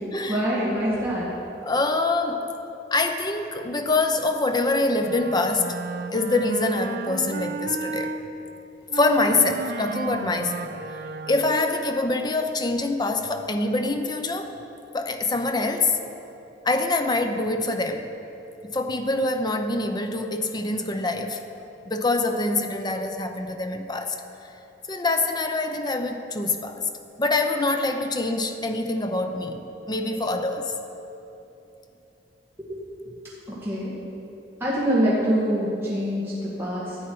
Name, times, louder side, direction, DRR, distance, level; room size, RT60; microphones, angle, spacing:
voice 1, 0.3-1.3 32.7-32.8 33.5-33.9 34.6-37.0, equal, 15° right, -8 dB, 1.9 m, -25 dB
voice 2, 1.6-2.5 2.9-5.8 6.1-8.2 8.9-10.7 11.3-14.5 14.9-16.0 16.6-18.1 18.6-21.4 21.8-24.2 24.9-26.9 27.2-30.7, left 2 dB, 25° left, 6 dB, 0.7 m, -25 dB
Wind instrument woodwind instrument, 5.0-8.2 8.9-11.6, right 4 dB, 60° right, 0.4 m, -33 dB
13.0 x 8.8 x 4.7 m, 2.9 s
head